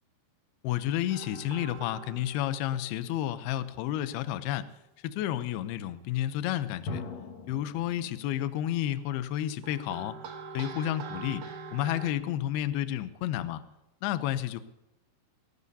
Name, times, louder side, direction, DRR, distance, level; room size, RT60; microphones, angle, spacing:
voice 1, 0.6-4.7 5.0-7.0 7.5-10.2 10.5-11.5 11.7-13.6 14.0-14.6, left 12 dB, 80° left, 12 dB, 2.3 m, -31 dB
sound 1, 1.1-3.4 3.8-4.3 6.5-6.6 7.6-8.3 8.9-12.1, right 6 dB, 80° right, 1.6 m, -44 dB
sound 2, 6.9-8.7, left 3 dB, 60° left, 1.9 m, -42 dB
19.0 x 19.0 x 2.8 m, 0.94 s
omnidirectional pair, 5.2 m